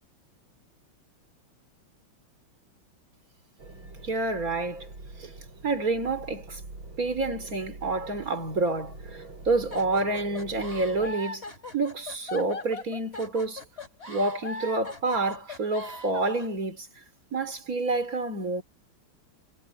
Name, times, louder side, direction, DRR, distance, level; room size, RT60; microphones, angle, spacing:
sound 1, 3.6-11.2, right 3 dB, 75° right, 7.5 m, -45 dB
voice 1, 4.0-4.9 5.2-5.3 5.6-6.6 7.0-11.4 11.7-13.6 14.1-16.9 17.3-18.6, right 3 dB, 40° right, 3.9 m, -28 dB
sound 2, 9.7-16.5, left 2 dB, 30° left, 3.6 m, -39 dB
omnidirectional pair, 2.3 m